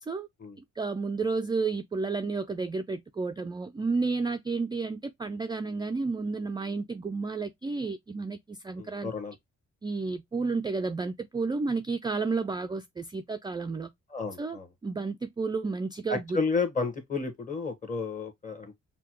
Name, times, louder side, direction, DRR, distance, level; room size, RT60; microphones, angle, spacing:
voice 1, 0.8-9.1 9.8-13.9 14.4-16.4, right 4 dB, 15° right, 0.3 m, -31 dB
voice 2, 8.8-9.3 14.1-14.7 16.1-18.8, left 4 dB, 25° left, 1.2 m, -31 dB
5.6 x 2.2 x 2.9 m
cardioid pair, 90°, 30 cm